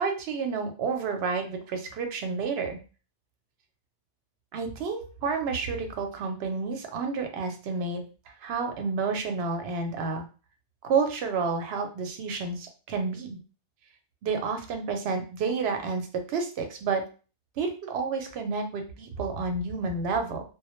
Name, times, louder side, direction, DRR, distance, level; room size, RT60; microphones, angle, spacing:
voice 1, 0.0-2.8 4.5-8.0 8.4-10.2 10.8-13.4 14.2-17.0 17.6-20.4, right 4 dB, 70° right, 5 dB, 0.8 m, -30 dB
2.1 x 2.0 x 2.9 m, 0.35 s
omnidirectional pair, 1.1 m